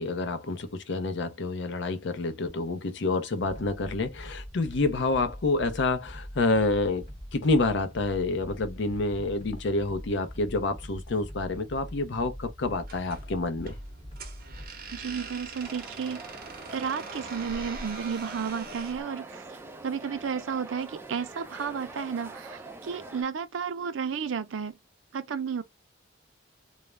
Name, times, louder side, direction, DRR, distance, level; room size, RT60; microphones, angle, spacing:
voice 1, 0.0-13.7, left 2 dB, 65° left, 0.6 m, -28 dB
sound 1, 3.4-14.7, equal, 30° left, 0.8 m, -43 dB
sound 2, 12.8-19.0, right 4 dB, 50° right, 0.8 m, -43 dB
voice 2, 14.9-16.3 16.7-19.4 19.8-24.8 25.1-25.6, right 6 dB, 80° right, 0.4 m, -32 dB
sound 3, 15.6-23.2, right 3 dB, 10° right, 0.4 m, -44 dB
2.4 x 2.0 x 3.0 m
head